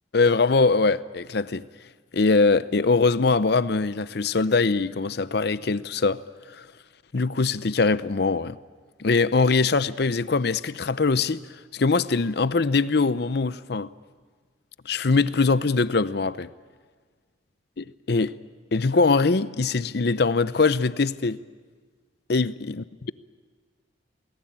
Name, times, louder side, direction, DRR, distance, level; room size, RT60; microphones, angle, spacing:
voice 1, 0.1-1.7 2.1-6.2 6.5-6.7 7.1-8.6 9.0-11.4 11.7-13.9 14.9-16.5 17.8-18.4 18.7-21.4 22.3-23.1, left 4 dB, 60° left, 0.6 m, -22 dB
28.0 x 18.5 x 8.8 m
head